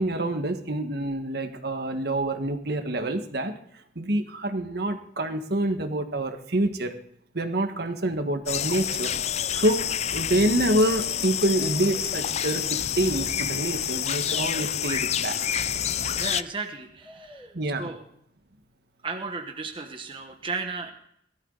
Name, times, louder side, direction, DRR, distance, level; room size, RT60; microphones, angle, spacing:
voice 1, 0.0-3.5 3.9-6.9 7.3-9.1 9.5-15.4 17.5-17.9, right 1 dB, 65° right, 6 dB, 1.5 m, -27 dB
Breathing, 7.9-8.2 8.5-8.6 9.5-9.7 9.9-11.0 11.5-12.2 12.6-13.7 14.2-14.9 15.4-16.4 17.0-17.6, equal, 5° left, 1.0 m, -44 dB
sound 1, 8.5-16.4, left 10 dB, 40° left, 0.4 m, -28 dB
sound 2, 10.5-15.8, left 6 dB, 80° left, 4.1 m, -47 dB
voice 2, 16.2-18.0 19.0-20.9, right 4 dB, 30° right, 4 dB, 1.1 m, -35 dB
18.0 x 13.0 x 4.0 m, 0.71 s
head